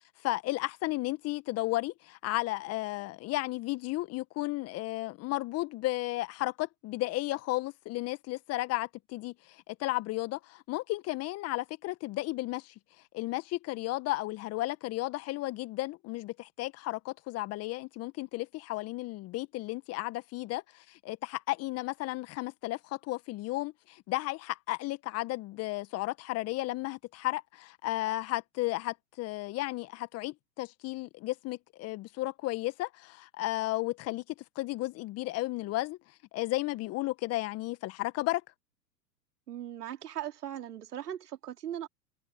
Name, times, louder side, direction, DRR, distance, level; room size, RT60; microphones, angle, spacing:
voice 1, 0.2-12.7 13.1-34.2 34.6-36.0 36.3-38.4, left 18 dB, 30° left, 1.7 m, -34 dB
voice 2, 39.5-41.9, right 11 dB, 70° right, 2.8 m, -39 dB
hypercardioid pair, 110°, 49 cm